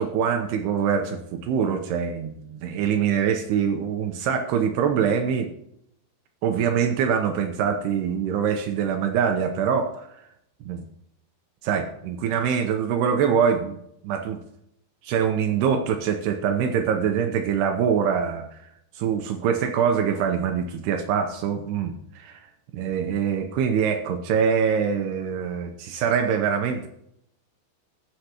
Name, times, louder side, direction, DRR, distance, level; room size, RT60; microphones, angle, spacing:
voice 1, 0.0-5.5 6.4-10.1 10.7-10.8 11.6-14.4 15.0-18.5 19.0-22.5 22.7-26.9, right 7 dB, 80° right, 5 dB, 2.6 m, -24 dB
19.5 x 6.6 x 2.9 m, 0.77 s
omnidirectional pair, 5.2 m